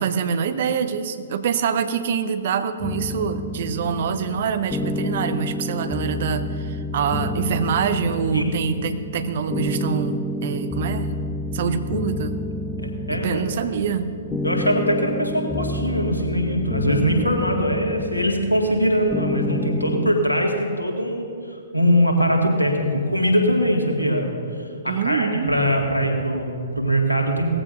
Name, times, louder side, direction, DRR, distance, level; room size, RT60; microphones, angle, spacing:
voice 1, 0.0-11.2 11.5-12.4 13.1-14.2 24.8-25.6, right 7 dB, 50° right, 10 dB, 0.8 m, -25 dB
sound 1, 2.8-20.1, left 1 dB, 10° left, 0.4 m, -29 dB
voice 2, 12.8-13.4 14.4-27.5, equal, 85° left, 1 dB, 2.0 m, -22 dB
18.5 x 15.0 x 2.6 m, 2.5 s
figure-of-eight pair, 115°, 0 cm